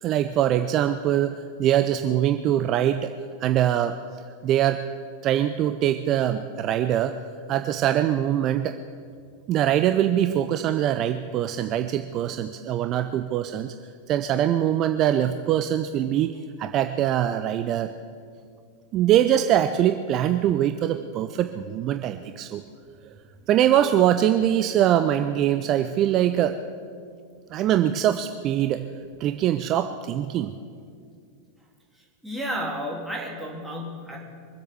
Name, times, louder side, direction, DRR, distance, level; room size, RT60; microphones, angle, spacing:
voice 1, 0.0-3.1 3.4-4.0 4.4-4.8 5.2-7.2 7.5-8.7 9.5-13.7 14.1-16.3 16.6-17.9 18.9-22.6 23.5-26.6 27.5-28.8 29.2-30.5, right 11 dB, 35° right, 8 dB, 0.6 m, -23 dB
voice 2, 32.2-34.2, equal, ahead, -3 dB, 3.4 m, -32 dB
23.5 x 8.0 x 7.0 m, 2.2 s
figure-of-eight pair, 90°, 0 cm